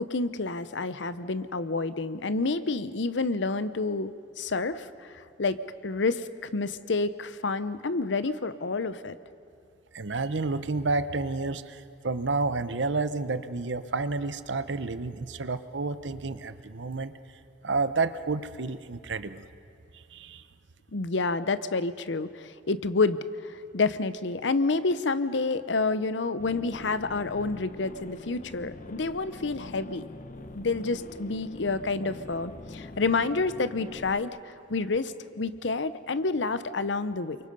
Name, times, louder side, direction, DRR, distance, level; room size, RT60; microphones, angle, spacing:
voice 1, 0.0-9.2 20.9-30.1 30.5-37.4, left 3 dB, 70° left, 13 dB, 0.8 m, -29 dB
voice 2, 9.9-17.1 17.6-19.5 19.9-20.4, right 3 dB, 70° right, 12 dB, 0.8 m, -30 dB
sound 1, 26.4-34.2, left 2 dB, 45° left, 0.8 m, -44 dB
28.5 x 24.0 x 5.5 m, 2.6 s
head